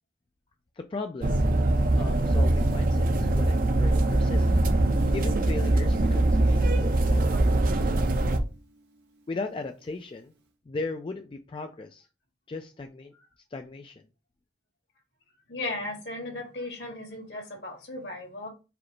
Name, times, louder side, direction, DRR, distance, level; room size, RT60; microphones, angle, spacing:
voice 1, 0.8-1.4 2.0-4.5 5.1-7.9 9.3-10.3 10.7-12.1 12.5-13.1 13.5-14.0, left 3 dB, 30° left, 5 dB, 0.3 m, -37 dB
sound 1, 1.2-8.4, right 2 dB, 50° right, 0.5 m, -23 dB
Guitar, 4.7-9.3, right 1 dB, 75° right, 1.0 m, -44 dB
voice 2, 15.5-18.5, left 2 dB, 70° left, 0 dB, 1.7 m, -36 dB
4.9 x 2.0 x 4.5 m, 0.31 s
head